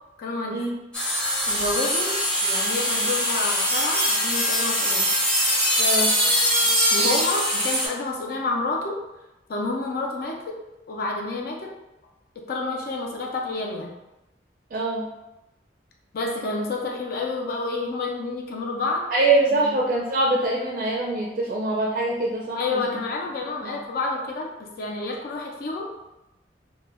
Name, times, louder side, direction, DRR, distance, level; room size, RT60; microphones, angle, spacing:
voice 1, 0.2-0.6 1.5-5.1 6.6-9.0 9.5-10.6 10.9-11.7 12.5-13.9 16.1-19.1 19.5-19.7 22.5-25.9, left 3 dB, 55° left, 0 dB, 0.4 m, -29 dB
sound 1, 0.9-7.9, equal, 5° left, 0.6 m, -22 dB
voice 2, 5.8-6.1 14.7-15.1 19.1-23.0 23.6-23.8, right 2 dB, 50° right, -3 dB, 0.4 m, -24 dB
2.1 x 2.1 x 3.3 m, 0.97 s
head